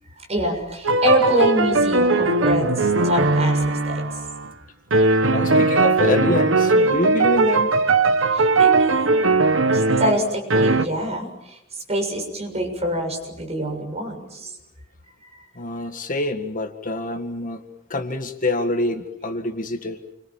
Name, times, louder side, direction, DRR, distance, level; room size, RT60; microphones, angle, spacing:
voice 1, 0.2-4.2 8.2-9.4 9.7-14.6 15.2-15.4, equal, 35° right, 2 dB, 6.9 m, -25 dB
sound 1, 0.8-4.5 4.9-10.2 10.5-10.9, right 3 dB, 75° right, 1.5 m, -19 dB
voice 2, 5.3-7.7 15.6-17.6 17.9-20.0, left 2 dB, 45° left, 7 dB, 1.9 m, -26 dB
29.5 x 24.5 x 7.4 m, 0.87 s
head